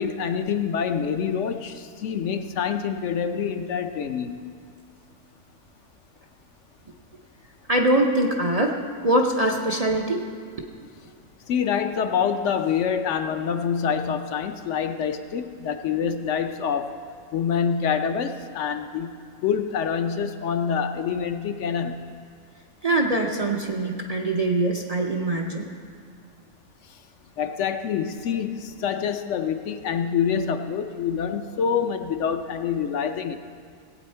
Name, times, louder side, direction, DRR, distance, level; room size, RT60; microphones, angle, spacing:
voice 1, 0.0-4.4 11.5-16.9 17.3-19.1 19.4-22.0 27.4-33.4, left 7 dB, 60° left, 8 dB, 0.9 m, -26 dB
voice 2, 7.7-8.8 9.0-10.2 22.8-25.7, right 1 dB, 45° right, 1 dB, 0.4 m, -23 dB
18.0 x 8.5 x 4.4 m, 2.2 s
omnidirectional pair, 1.6 m